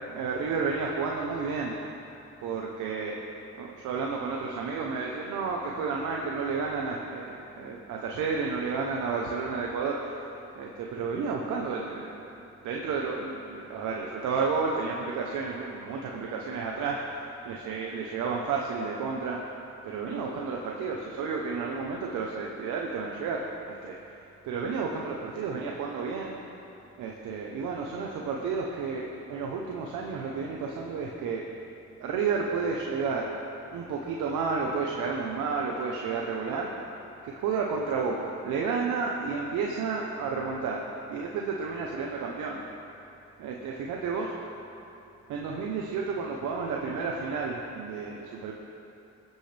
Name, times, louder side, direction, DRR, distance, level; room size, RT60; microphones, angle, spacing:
voice 1, 0.1-1.7 2.4-3.2 3.5-10.3 10.6-12.4 12.6-19.4 19.8-24.0 24.4-26.3 27.0-31.4 32.0-33.3 33.7-36.7 37.2-42.6 43.4-44.3 45.3-48.5, right 4 dB, 90° right, -1 dB, 1.0 m, -31 dB
19.5 x 8.4 x 3.5 m, 2.8 s
cardioid pair, 90°, 30 cm